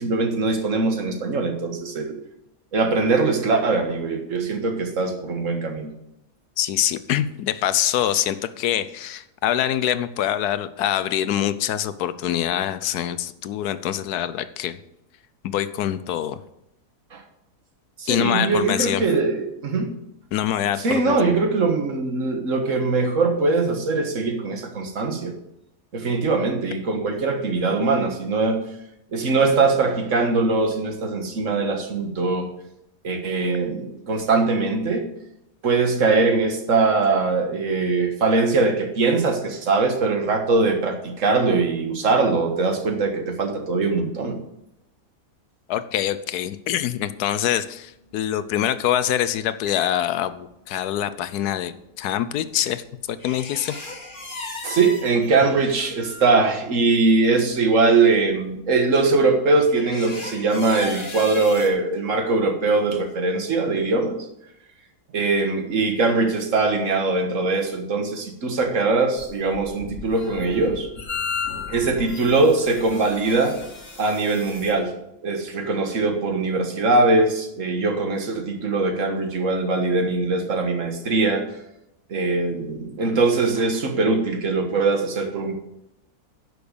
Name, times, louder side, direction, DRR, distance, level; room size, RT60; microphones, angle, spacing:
voice 1, 0.0-2.2 2.7-5.9 17.1-17.2 18.0-19.9 20.8-25.3 25.9-28.6 29.1-32.5 33.0-35.0 35.6-44.4 54.6-64.2 65.1-70.9 71.7-73.6 74.0-74.9 75.2-81.5 82.1-85.5, right 3 dB, 55° right, 5 dB, 1.7 m, -21 dB
voice 2, 6.6-14.8 15.4-16.4 18.1-19.0 20.3-21.3 45.7-51.7 52.0-53.8, left 11 dB, 80° left, 13 dB, 1.2 m, -24 dB
sound 1, 49.1-49.8 53.2-55.8 56.9-57.0 57.2-57.3 57.7-58.1 59.7-61.7, left 2 dB, 30° left, 1.8 m, -36 dB
sound 2, 69.2-74.7, left 5 dB, 55° left, 1.8 m, -34 dB
10.5 x 6.3 x 6.8 m, 0.83 s
omnidirectional pair, 1.7 m